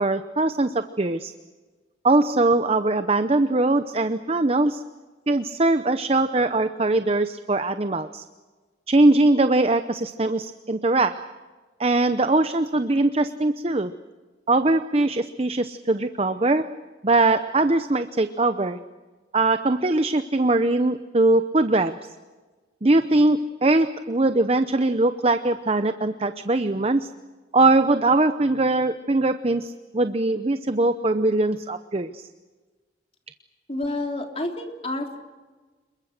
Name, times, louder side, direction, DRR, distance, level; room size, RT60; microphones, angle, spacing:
voice 1, 0.0-1.3 2.0-4.8 5.3-8.2 8.9-11.3 11.8-13.9 14.5-16.8 17.0-18.8 19.3-22.1 22.8-27.1 27.5-32.3, right 2 dB, 35° right, 10 dB, 0.7 m, -21 dB
voice 2, 33.7-35.2, left 2 dB, 35° left, 3 dB, 3.2 m, -29 dB
28.0 x 22.5 x 6.6 m, 1.3 s
head